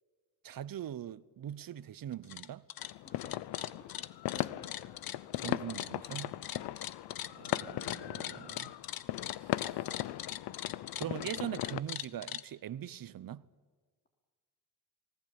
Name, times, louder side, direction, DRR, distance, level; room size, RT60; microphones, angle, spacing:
voice 1, 0.4-2.6 5.4-6.4 7.3-8.8 9.4-10.0 11.0-13.4, right 11 dB, 60° right, 0.9 m, -42 dB
sound 1, 2.1-2.5 2.7-12.4, left 11 dB, 60° left, 1.0 m, -41 dB
sound 2, 2.8-11.8, left 15 dB, 90° left, 0.7 m, -38 dB
voice 2, 3.0-3.9 4.3-5.1 6.5-6.8, left 1 dB, 25° left, 3.5 m, -56 dB
20.5 x 19.0 x 8.5 m
cardioid pair, 70°, 39 cm